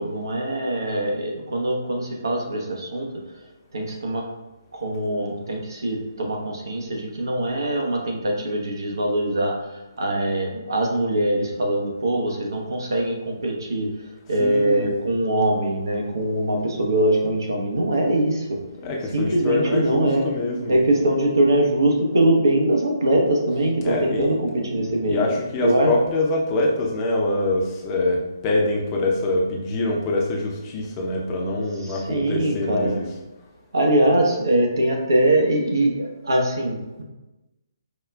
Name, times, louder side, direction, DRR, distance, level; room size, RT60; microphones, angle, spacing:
voice 1, 0.0-3.1 3.7-4.2 4.8-9.5 10.0-13.9 14.3-18.6 19.1-20.2 20.7-25.2 25.6-25.9 31.8-33.0 33.7-37.0, right 1 dB, 70° right, 0 dB, 0.8 m, -22 dB
voice 2, 14.4-14.9 18.8-20.8 23.8-24.3 25.1-33.1, left 2 dB, 25° left, -1 dB, 0.6 m, -24 dB
4.9 x 2.4 x 2.2 m, 1.0 s
figure-of-eight pair, 140°, 2 cm